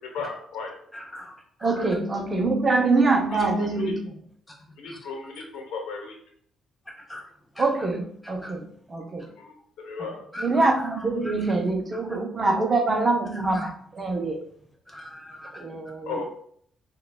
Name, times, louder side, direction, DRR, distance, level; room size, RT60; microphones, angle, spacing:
voice 1, 0.0-0.7 3.3-4.0 4.8-6.2 9.4-10.2 16.1-16.2, left 4 dB, 85° left, 2 dB, 0.9 m, -35 dB
voice 2, 0.9-1.9 7.1-7.2 7.5-7.7 8.4-8.5 10.3-10.7 11.0-11.3 13.3-13.6 14.9-15.5, left 1 dB, 5° left, -3 dB, 1.0 m, -40 dB
voice 3, 1.6-4.1 7.6-8.6 8.9-9.3 10.4-14.4 15.6-16.2, right 3 dB, 35° right, 3 dB, 0.6 m, -24 dB
6.3 x 2.3 x 2.3 m, 0.64 s
cardioid pair, 90°, 0 cm